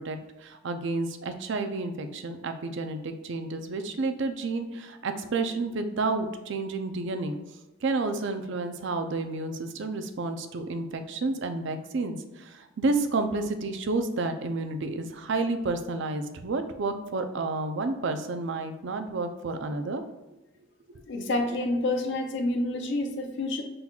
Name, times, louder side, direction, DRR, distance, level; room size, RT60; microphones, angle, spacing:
voice 1, 0.0-7.4 7.8-20.0 20.9-21.0, right 3 dB, 60° right, 7 dB, 0.5 m, -30 dB
voice 2, 21.1-23.6, left 2 dB, 60° left, 5 dB, 0.5 m, -28 dB
5.7 x 3.9 x 2.3 m, 1.1 s
head